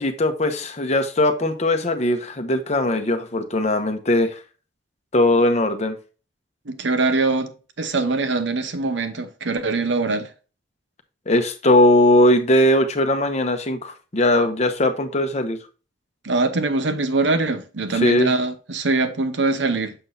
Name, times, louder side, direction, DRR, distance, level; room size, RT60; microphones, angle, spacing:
voice 1, 0.0-4.4 5.1-6.0 11.3-15.6 17.9-18.3, left 1 dB, 40° left, 0.9 m, -19 dB
voice 2, 6.7-7.5 7.8-10.3 16.2-19.9, right 3 dB, 90° right, 0.9 m, -22 dB
6.8 x 6.0 x 2.7 m
head